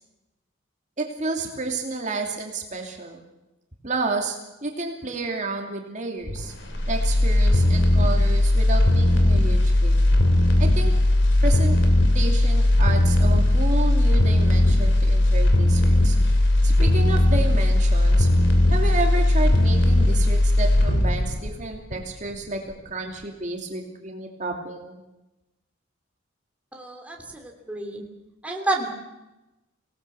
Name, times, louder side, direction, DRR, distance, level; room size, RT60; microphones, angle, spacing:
voice 1, 1.0-3.2 3.8-6.5 6.9-9.9 10.6-10.9 11.4-11.8 12.1-16.3 16.6-18.3 18.7-22.6 22.9-25.0, right 3 dB, 35° right, 2 dB, 2.8 m, -31 dB
sound 1, 6.3-22.3 22.7-22.8, left 1 dB, 60° left, 3.5 m, -18 dB
voice 2, 26.7-28.0 28.4-28.9, right 2 dB, 5° right, 1 dB, 3.2 m, -29 dB
26.0 x 18.5 x 7.0 m, 0.99 s
head